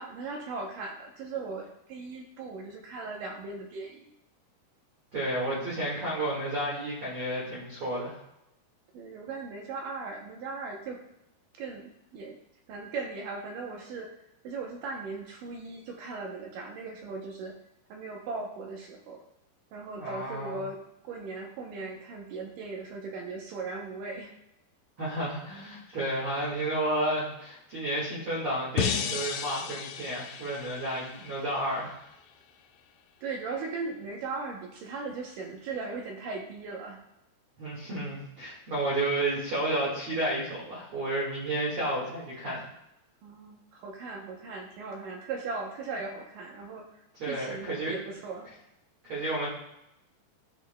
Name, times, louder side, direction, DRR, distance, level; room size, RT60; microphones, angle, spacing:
voice 1, 0.0-4.0 8.9-11.0 11.6-12.4 12.7-14.2 14.4-17.6 17.9-19.2 19.7-24.3 33.2-37.0 43.2-48.5, right 4 dB, 80° right, 1 dB, 1.9 m, -38 dB
voice 2, 5.1-8.2 20.0-20.6 25.0-31.9 37.6-42.6 47.2-47.9 49.0-49.5, right 1 dB, 45° right, -7 dB, 1.8 m, -31 dB
sound 1, 28.8-31.9, left 8 dB, 85° left, 2.8 m, -34 dB
14.0 x 6.5 x 2.2 m, 0.85 s
omnidirectional pair, 4.8 m